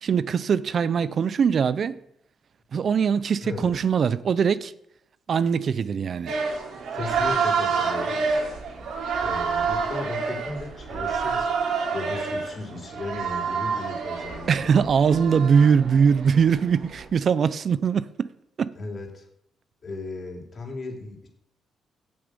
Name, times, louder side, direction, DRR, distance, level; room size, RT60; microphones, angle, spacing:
voice 1, 0.0-2.0 2.7-4.7 5.3-6.3 14.5-18.3 18.6-18.7, right 6 dB, 50° right, 0.5 m, -21 dB
voice 2, 3.4-3.8 6.9-8.2 9.2-14.9 18.7-19.2 19.8-21.3, left 3 dB, 40° left, 3.2 m, -36 dB
sound 1, 6.3-17.1, right 5 dB, 75° right, 2.7 m, -28 dB
8.8 x 6.9 x 8.1 m
cardioid pair, 90°, 0 cm